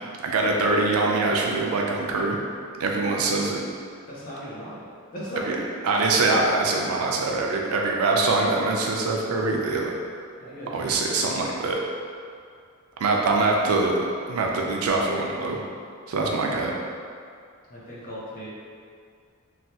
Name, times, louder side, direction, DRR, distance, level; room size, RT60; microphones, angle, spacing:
voice 1, 0.2-2.4 2.8-3.6 5.5-5.6 5.8-9.9 10.7-11.8 13.0-15.6 16.1-16.7, right 3 dB, 80° right, 0 dB, 0.4 m, -23 dB
voice 2, 4.1-5.6 10.4-10.9 17.7-18.5, equal, 40° left, -8 dB, 0.7 m, -37 dB
3.2 x 2.3 x 2.7 m, 2.2 s
head